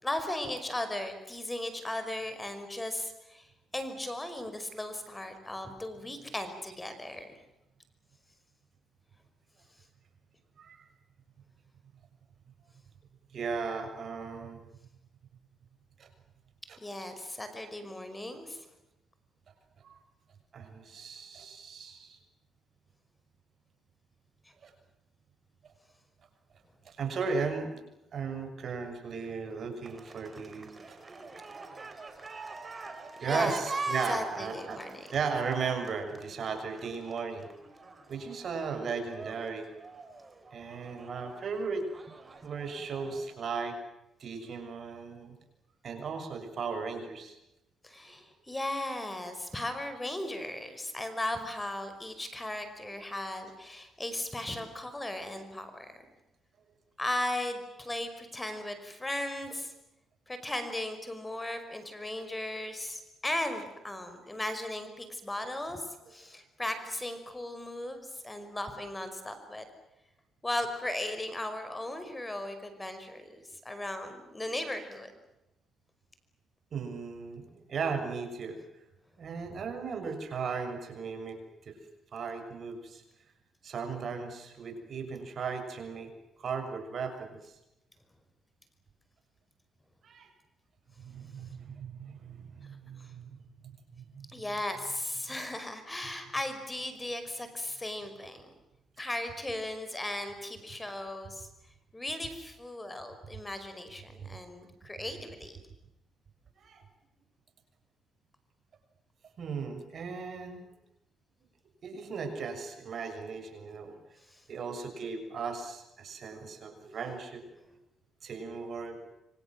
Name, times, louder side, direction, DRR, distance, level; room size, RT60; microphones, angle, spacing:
voice 1, 0.0-3.5 3.7-7.3 16.8-18.7 33.3-33.5 34.1-35.1 47.8-55.9 57.0-59.7 60.3-69.7 70.4-75.1 93.0-93.1 94.3-98.5 99.0-101.5 101.9-105.6 114.3-114.4, left 1 dB, 15° left, 9 dB, 5.5 m, -37 dB
voice 2, 10.6-10.9 13.3-14.6 16.0-16.1 16.7-16.8 19.8-19.9 20.5-22.2 24.6-24.7 26.8-27.8 28.1-31.0 33.2-34.8 35.1-37.5 38.1-39.7 40.5-41.9 42.4-43.8 44.2-45.3 45.8-47.4 76.7-78.6 79.2-81.8 82.1-83.0 83.6-86.1 86.4-87.6 90.0-90.3 91.0-93.4 93.6-94.4 106.6-106.8 109.4-110.7 111.8-113.9 114.5-117.8 118.2-119.1, right 5 dB, 55° right, 6 dB, 6.8 m, -36 dB
sound 1, 29.8-43.2, right 3 dB, 30° right, 4.6 m, -43 dB
26.5 x 25.5 x 7.7 m, 0.91 s
cardioid pair, 90°, 0 cm